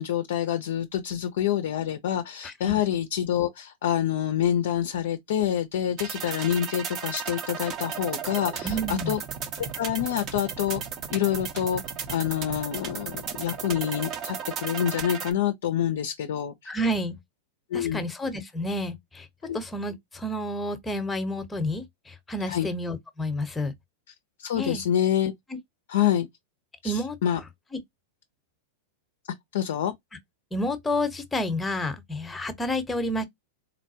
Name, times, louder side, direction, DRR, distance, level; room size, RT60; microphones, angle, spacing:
voice 1, 0.0-9.2 9.6-10.8 11.1-11.8 12.1-16.7 17.7-18.0 19.4-19.6 22.5-22.7 24.4-25.3 25.9-26.3 26.8-27.4 29.5-29.9, left 10 dB, 65° left, 0.4 m, -27 dB
voice 2, 2.4-2.8 8.6-9.1 16.7-17.2 17.7-19.3 19.5-23.7 24.5-24.8 26.8-27.2 27.7-27.8 30.5-33.2, left 1 dB, 10° left, 0.8 m, -30 dB
sound 1, 6.0-15.3, right 7 dB, 40° right, 0.7 m, -35 dB
4.0 x 2.2 x 2.7 m
hypercardioid pair, 105°, 0 cm